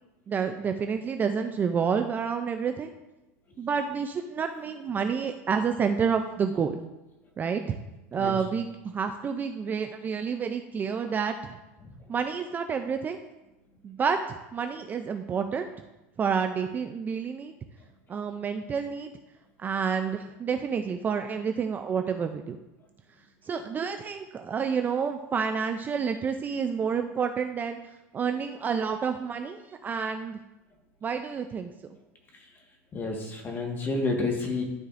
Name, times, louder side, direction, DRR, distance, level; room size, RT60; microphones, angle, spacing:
voice 1, 0.3-2.9 3.6-6.8 7.4-7.8 8.1-11.5 12.1-13.2 13.8-14.2 14.5-15.7 16.2-17.5 18.1-19.1 19.6-22.6 23.4-27.8 28.1-30.4 31.0-32.0, right 6 dB, 25° right, 7 dB, 0.4 m, -29 dB
voice 2, 32.9-34.6, left 3 dB, 25° left, 2 dB, 1.5 m, -30 dB
12.0 x 4.7 x 2.5 m, 1.0 s
supercardioid pair, 130°, 8 cm